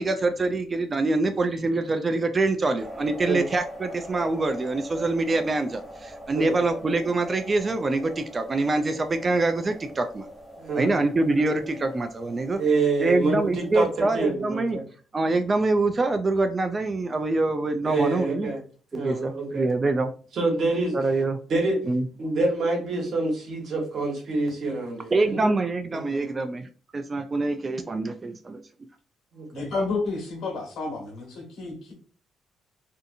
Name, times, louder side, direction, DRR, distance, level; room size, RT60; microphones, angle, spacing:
voice 1, 0.0-10.3 10.7-12.6 13.0-14.8 15.1-18.5 18.9-20.1 20.9-21.4 21.9-22.1 25.1-28.6, right 2 dB, 30° right, 8 dB, 0.3 m, -25 dB
sound 1, 2.8-14.3, equal, ahead, 0.9 m, -42 dB
voice 2, 10.6-11.0 11.4-11.5 12.6-14.8 17.8-18.6 18.9-19.7 20.3-20.9 21.5-21.8 22.2-25.5 25.9-26.3 29.3-29.6, right 3 dB, 65° right, 0 dB, 1.1 m, -26 dB
voice 3, 29.5-31.9, left 3 dB, 70° left, 1 dB, 1.2 m, -30 dB
2.6 x 2.4 x 2.5 m, 0.40 s
cardioid pair, 90°, 0 cm